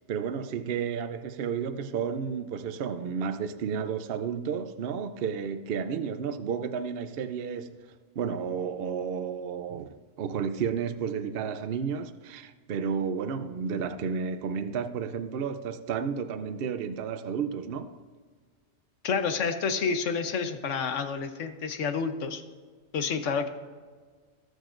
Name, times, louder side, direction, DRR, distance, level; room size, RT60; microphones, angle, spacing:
voice 1, 0.1-7.8 8.2-18.0, right 6 dB, 60° right, 0.8 m, -32 dB
voice 2, 19.0-22.4 22.9-23.5, left 5 dB, 85° left, 1.2 m, -29 dB
19.5 x 6.5 x 2.5 m
omnidirectional pair, 1.2 m